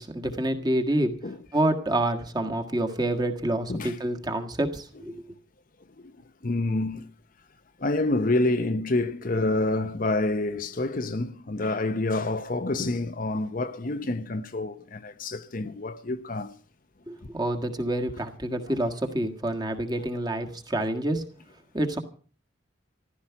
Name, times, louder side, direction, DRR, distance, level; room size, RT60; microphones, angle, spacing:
voice 1, 0.0-1.1 1.5-5.2 17.1-21.2 21.7-22.0, right 1 dB, 20° right, 1.6 m, -27 dB
voice 2, 6.4-7.1 7.8-16.5, left 2 dB, 45° left, 0.8 m, -27 dB
15.0 x 13.0 x 5.8 m
head